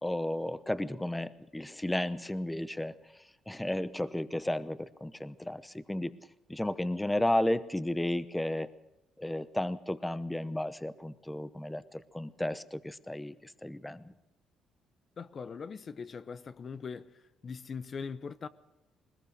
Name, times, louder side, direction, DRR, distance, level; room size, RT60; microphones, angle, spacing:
voice 1, 0.0-2.9 3.5-6.1 6.5-8.7 9.2-14.1, left 1 dB, 10° left, 0.9 m, -33 dB
voice 2, 15.2-17.1 17.4-18.5, left 5 dB, 45° left, 0.9 m, -41 dB
20.5 x 19.5 x 6.5 m
supercardioid pair, 70°, 0 cm